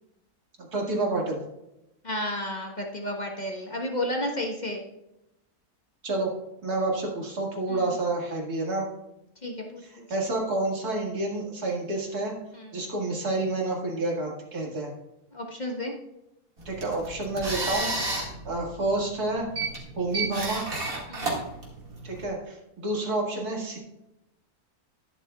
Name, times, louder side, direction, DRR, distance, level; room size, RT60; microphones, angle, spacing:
voice 1, 0.7-1.4 6.0-6.3 6.6-8.9 9.8-12.3 12.7-14.9 16.7-17.9 18.5-19.5 20.0-20.7 22.0-23.8, right 2 dB, 80° right, -1 dB, 2.5 m, -29 dB
voice 2, 2.0-4.8 7.7-7.9 9.4-10.0 12.5-12.7 15.3-15.9 21.1-21.4, left 1 dB, 30° left, 1 dB, 1.2 m, -32 dB
sound 1, 16.6-22.2, right 3 dB, 65° right, 2.5 m, -32 dB
11.5 x 10.5 x 2.3 m, 0.90 s
omnidirectional pair, 1.6 m